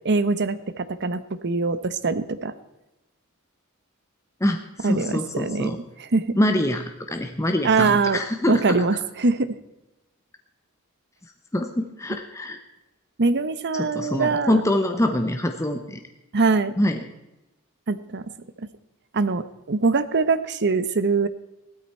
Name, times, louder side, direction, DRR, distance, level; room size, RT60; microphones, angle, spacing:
voice 1, 0.0-2.5 4.8-5.7 6.0-6.4 7.6-8.2 8.5-9.6 13.2-14.6 16.3-16.8 17.9-18.2 19.1-21.3, right 4 dB, 50° right, 13 dB, 0.9 m, -23 dB
voice 2, 4.4-5.8 6.4-8.8 11.5-12.6 13.8-16.0 16.8-17.0, left 1 dB, 15° left, 5 dB, 0.9 m, -24 dB
16.0 x 13.0 x 4.3 m, 0.96 s
head